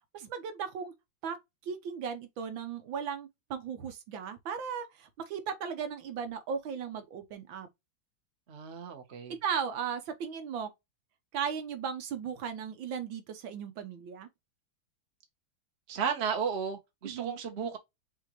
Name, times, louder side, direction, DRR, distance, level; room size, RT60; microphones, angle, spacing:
voice 1, 0.1-0.9 1.2-1.4 1.6-7.7 9.4-10.7 11.3-14.3 17.0-17.4, right 7 dB, 75° right, 1.6 m, -36 dB
voice 2, 8.5-9.4 15.9-17.8, right 7 dB, 40° right, 1.2 m, -34 dB
6.1 x 2.7 x 2.9 m
omnidirectional pair, 2.2 m